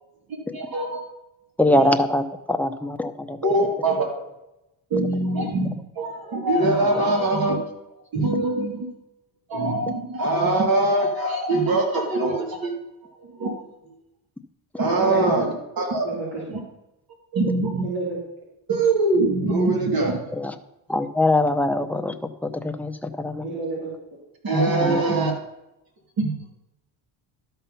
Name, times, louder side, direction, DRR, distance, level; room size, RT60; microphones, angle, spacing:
voice 1, 0.3-1.1 3.4-4.1 4.9-7.6 8.1-8.9 9.5-12.7 13.2-13.6 13.9-14.0 14.8-15.5 15.8-16.1 16.5-16.6 17.3-17.9 18.7-20.2 24.4-25.3 26.2-26.4, right 2 dB, 50° right, 1 dB, 3.0 m, -23 dB
voice 2, 1.6-3.4 6.8-7.0 15.2-15.3 20.3-20.6 20.9-23.5 24.8-25.0, left 1 dB, 5° left, 7 dB, 0.7 m, -23 dB
voice 3, 15.0-15.3 16.0-16.4 17.8-18.2 23.4-23.9 24.7-25.1, right 2 dB, 75° right, -6 dB, 3.4 m, -29 dB
12.5 x 5.6 x 5.6 m, 0.90 s
cardioid pair, 90°, 46 cm